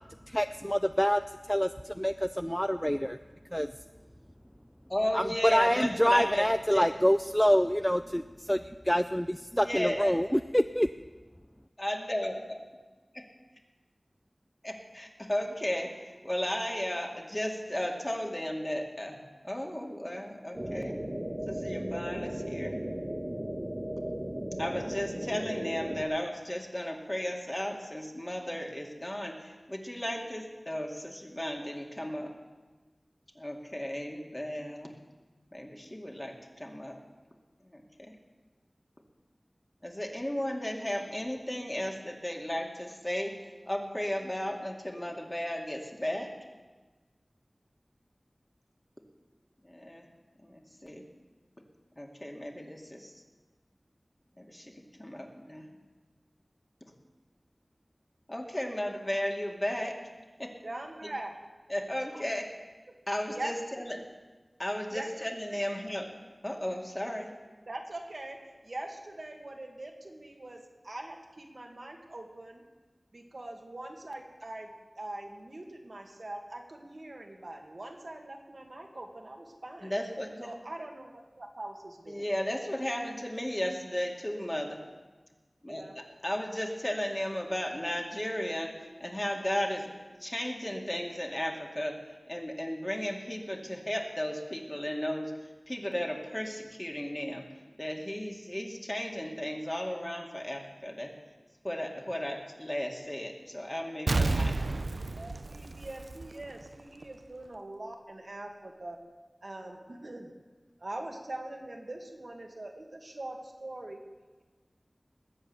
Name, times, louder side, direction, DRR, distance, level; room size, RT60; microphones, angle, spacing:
voice 1, 0.3-1.2 1.5-1.7 2.0-3.2 3.5-3.7 5.1-5.2 5.5-8.6 8.9-10.9, equal, 5° left, 10 dB, 0.4 m, -26 dB
voice 2, 4.9-6.9 9.5-10.2 11.8-12.4 13.1-13.2 14.6-20.9 21.5-22.8 24.6-32.3 33.4-34.9 35.5-37.0 37.6-38.1 39.8-43.3 43.6-46.3 49.6-50.1 50.4-51.0 52.0-53.1 54.4-55.7 58.3-59.9 60.4-60.5 61.0-61.1 61.7-62.5 63.1-64.0 64.6-66.1 66.4-67.3 79.8-80.5 82.1-84.8 85.6-89.9 90.2-92.0 92.3-95.3 95.7-97.5 97.8-101.1 101.6-104.6, left 1 dB, 25° left, 1 dB, 2.3 m, -35 dB
sound 1, 20.5-26.0, right 1 dB, 20° right, 1.8 m, -36 dB
voice 3, 60.6-61.4 62.1-62.2 63.3-63.5 64.9-65.1 65.5-65.8 67.7-72.6 73.1-74.7 75.0-79.9 80.4-82.3 85.7-85.9 105.2-109.0 109.4-110.3 110.8-114.0, right 1 dB, 65° right, 2 dB, 2.0 m, -42 dB
Explosion, 104.1-106.7 107.0-107.1, right 3 dB, 85° right, 0.6 m, -30 dB
20.0 x 8.1 x 7.0 m, 1.3 s
wide cardioid pair, 50°, 0 cm